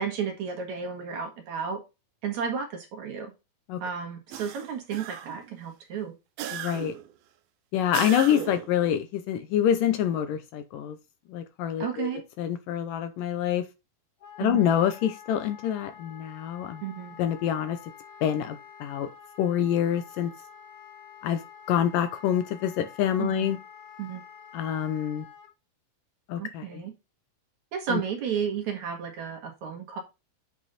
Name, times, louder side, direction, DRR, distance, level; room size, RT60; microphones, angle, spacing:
voice 1, 0.0-1.8 2.2-3.3 3.8-6.1 11.8-12.2 14.4-14.7 16.8-17.2 23.2-23.6 24.0-24.2 26.4-26.9 27.7-30.0, right 7 dB, 55° right, 2.7 m, -32 dB
sound 1, 4.3-5.5 6.4-7.1 7.9-8.8, right 11 dB, 80° right, 2.7 m, -36 dB
voice 2, 6.5-7.0 7.7-11.0 11.3-12.1 12.4-13.6 14.4-16.8 17.2-17.8 18.2-19.1 19.4-20.3 21.2-21.4 21.7-23.6 24.5-25.3 26.3-26.8 27.9-28.0, left 10 dB, 75° left, 2.2 m, -26 dB
Wind instrument woodwind instrument, 14.2-25.5, left 8 dB, 45° left, 3.6 m, -48 dB
8.1 x 5.3 x 4.0 m
omnidirectional pair, 4.3 m